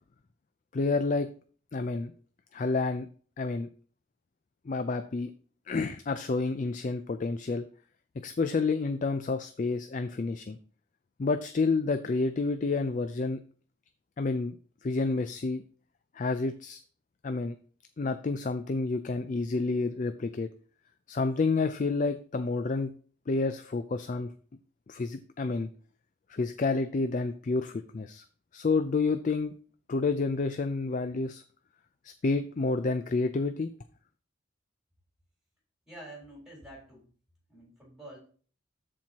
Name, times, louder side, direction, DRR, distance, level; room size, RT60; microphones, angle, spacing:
voice 1, 0.7-1.3 1.7-2.1 2.5-3.1 3.4-3.7 4.7-5.3 5.7-7.6 8.2-10.6 11.2-13.4 14.2-14.6 14.8-15.6 16.2-16.8 17.2-17.5 18.0-20.5 21.1-22.9 23.3-24.3 24.9-25.7 26.3-28.2 28.5-29.5 29.9-31.4 32.2-33.7, left 3 dB, 40° left, 9 dB, 0.4 m, -29 dB
voice 2, 35.9-37.0 37.5-38.2, right 1 dB, ahead, -3 dB, 3.8 m, -47 dB
13.0 x 4.5 x 2.9 m, 0.43 s
head